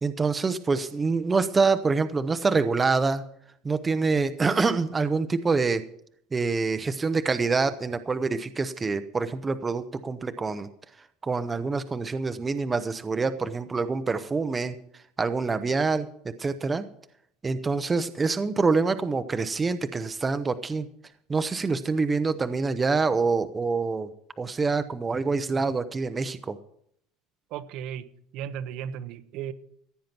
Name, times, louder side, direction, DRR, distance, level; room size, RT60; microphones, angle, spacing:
voice 1, 0.0-3.2 3.6-5.8 6.3-10.7 11.2-14.8 15.2-16.9 17.4-20.9 21.3-24.1 24.4-26.6, right 4 dB, 15° right, 10 dB, 0.7 m, -26 dB
voice 2, 27.5-28.0 28.3-29.5, right 9 dB, 55° right, 11 dB, 0.9 m, -35 dB
15.5 x 9.3 x 5.9 m, 0.67 s
cardioid pair, 155°, 0 cm